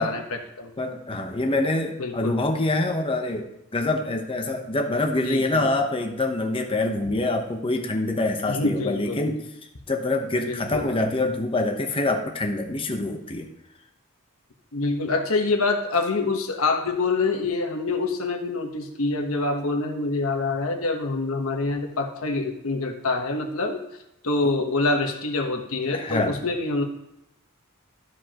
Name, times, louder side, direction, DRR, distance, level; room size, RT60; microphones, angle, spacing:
voice 1, 0.0-0.7 2.0-2.4 5.2-5.7 8.5-9.3 10.5-11.0 14.7-23.8 24.2-26.8, left 3 dB, 80° left, 4 dB, 1.2 m, -26 dB
voice 2, 0.8-9.4 9.9-13.5 25.9-26.4, left 2 dB, 25° left, 3 dB, 0.9 m, -25 dB
13.0 x 5.1 x 3.0 m, 0.85 s
head